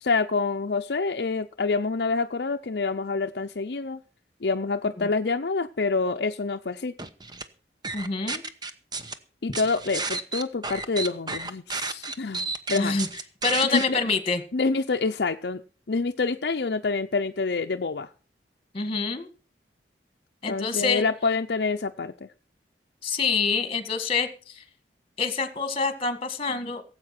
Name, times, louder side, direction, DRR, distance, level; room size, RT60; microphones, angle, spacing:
voice 1, 0.0-4.0 4.4-6.9 9.4-13.0 13.6-14.0 14.5-15.6 15.9-18.1 20.5-22.3, left 4 dB, 65° left, 6 dB, 0.6 m, -27 dB
sound 1, 7.0-7.4 7.8-9.1 9.5-13.8, right 3 dB, 25° right, 1.0 m, -31 dB
voice 2, 7.9-8.4 12.8-13.1 13.4-14.4 18.7-19.3 20.4-21.1 23.0-24.6 25.2-26.8, left 4 dB, 35° left, 10 dB, 1.8 m, -26 dB
17.5 x 8.2 x 6.0 m, 0.37 s
head